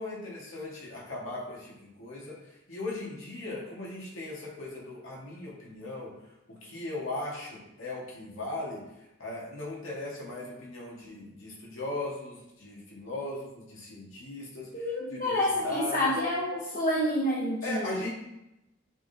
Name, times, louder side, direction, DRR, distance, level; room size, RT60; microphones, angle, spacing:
voice 1, 0.0-6.1 6.6-8.8 9.2-16.2 17.6-18.1, left 2 dB, 75° left, -4 dB, 1.9 m, -38 dB
voice 2, 14.7-18.0, left 1 dB, 45° left, -3 dB, 0.8 m, -28 dB
10.5 x 3.7 x 2.9 m, 0.90 s
head